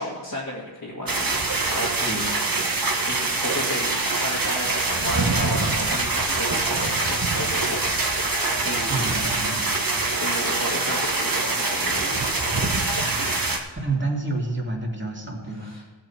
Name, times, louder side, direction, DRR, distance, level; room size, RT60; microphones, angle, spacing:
voice 1, 0.0-2.3 3.0-9.1 10.1-12.2 15.5-15.8, left 1 dB, 45° left, -5 dB, 2.2 m, -34 dB
sound 1, 1.1-13.6, right 3 dB, 45° right, 1.4 m, -24 dB
voice 2, 8.9-10.0 12.8-13.1 13.8-15.7, right 2 dB, 25° right, -1 dB, 2.5 m, -30 dB
16.5 x 7.7 x 4.3 m, 1.3 s
wide cardioid pair, 65°, 47 cm